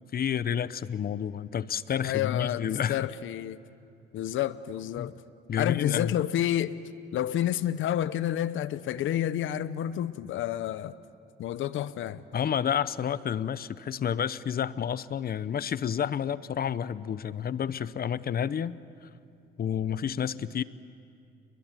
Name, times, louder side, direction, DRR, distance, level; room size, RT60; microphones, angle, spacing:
voice 1, 0.1-3.1 5.0-5.1 5.5-6.1 12.3-18.8 19.6-20.6, left 8 dB, 50° left, 0.8 m, -30 dB
voice 2, 2.0-3.6 4.1-5.1 5.6-6.8 7.1-11.0 11.4-12.2, left 11 dB, 80° left, 0.9 m, -29 dB
30.0 x 22.0 x 9.1 m
cardioid pair, 90°, 20 cm